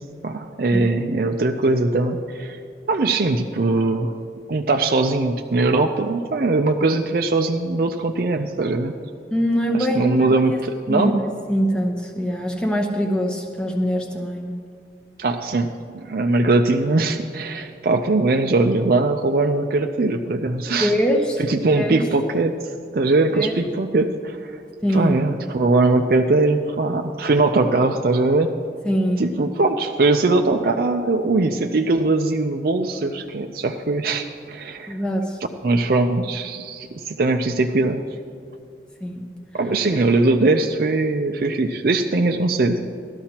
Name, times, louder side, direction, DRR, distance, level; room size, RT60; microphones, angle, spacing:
voice 1, 0.2-2.6 2.9-4.2 4.5-8.9 9.9-11.1 15.2-15.7 15.9-20.9 21.4-22.5 22.9-24.5 24.9-28.5 29.2-35.0 35.6-38.0 39.5-43.0, right 2 dB, 55° right, 4 dB, 0.5 m, -20 dB
voice 2, 9.3-10.4 10.9-11.1 11.5-14.5 20.8-21.4 21.7-22.0 23.3-23.6 24.8-25.2 28.8-29.2 34.9-35.4 39.0-39.3, equal, 5° left, 0 dB, 0.7 m, -23 dB
18.5 x 12.5 x 2.9 m, 2.3 s
head